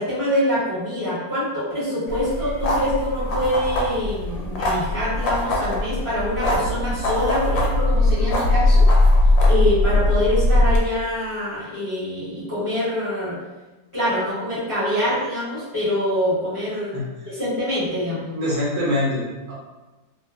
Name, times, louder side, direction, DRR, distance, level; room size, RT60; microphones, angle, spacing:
voice 1, 0.0-8.9 9.5-13.4 13.9-17.0 17.2-18.3, left 1 dB, 20° left, -13 dB, 0.9 m, -25 dB
sound 1, 2.1-10.8, left 1 dB, 80° left, 1.3 m, -20 dB
voice 2, 18.3-19.5, left 1 dB, 65° right, -7 dB, 1.2 m, -24 dB
3.1 x 2.3 x 2.3 m, 1.1 s
omnidirectional pair, 2.0 m